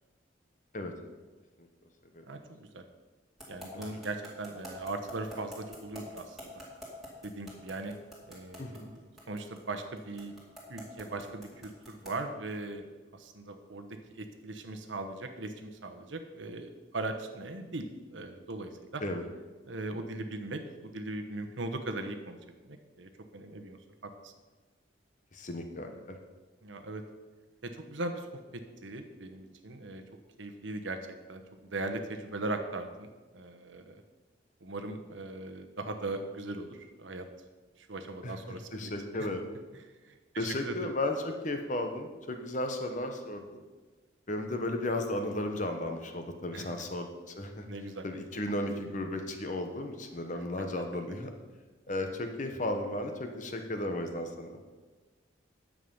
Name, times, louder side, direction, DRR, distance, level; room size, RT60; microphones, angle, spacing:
voice 1, 0.7-1.1 1.6-1.7 2.1-2.2 3.7-3.9 8.6-8.9 19.0-19.2 25.3-26.2 38.2-39.5 40.4-43.6 44.3-47.7 48.0-51.3 51.9-54.6, left 1 dB, 40° left, 5 dB, 1.1 m, -35 dB
voice 2, 2.3-2.8 3.5-6.5 7.2-7.9 8.3-9.0 9.3-10.3 10.7-12.8 13.1-13.9 14.2-19.0 19.7-22.4 22.6-24.3 26.6-27.0 27.6-28.3 28.5-30.0 30.4-31.0 31.3-34.0 34.6-37.3 37.8-38.9 40.1-40.7 46.5-46.9 47.7-48.0, right 2 dB, 85° right, 6 dB, 1.1 m, -39 dB
sound 1, 3.4-12.3, equal, ahead, 2.5 m, -46 dB
9.7 x 7.6 x 5.5 m, 1.3 s
head